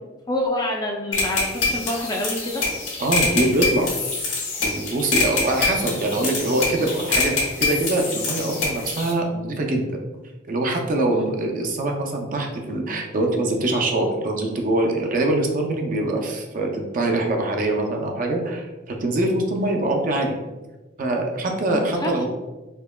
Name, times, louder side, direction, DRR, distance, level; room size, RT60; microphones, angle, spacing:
voice 1, 0.3-2.6 11.1-11.3 19.5-19.7 21.7-22.3, left 1 dB, 20° left, 0 dB, 0.4 m, -27 dB
sound 1, 1.1-9.1, left 4 dB, 80° left, 1.2 m, -25 dB
voice 2, 3.0-3.9 4.6-7.3 7.6-10.0 10.5-20.4 21.0-22.3, right 2 dB, 45° right, 2 dB, 0.5 m, -23 dB
4.5 x 2.8 x 2.2 m, 1.2 s
head